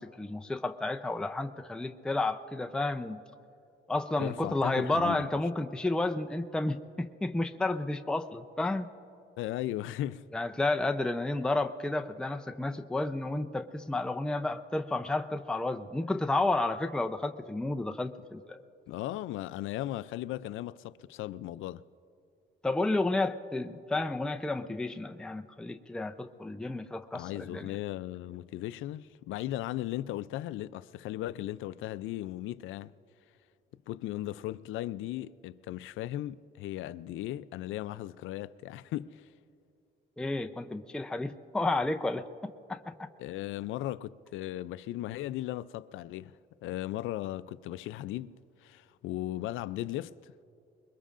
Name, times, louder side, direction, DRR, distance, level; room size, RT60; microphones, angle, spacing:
voice 1, 0.0-3.2 3.9-8.9 10.3-18.6 22.6-27.7 40.2-42.3 42.7-43.1, left 2 dB, 5° left, 0.5 m, -31 dB
voice 2, 4.2-5.3 9.4-10.3 18.9-21.8 27.1-32.9 33.9-39.3 43.2-46.4 46.6-48.3 48.6-50.3, left 14 dB, 85° left, 0.4 m, -37 dB
24.5 x 21.5 x 2.5 m
cardioid pair, 90°, 20 cm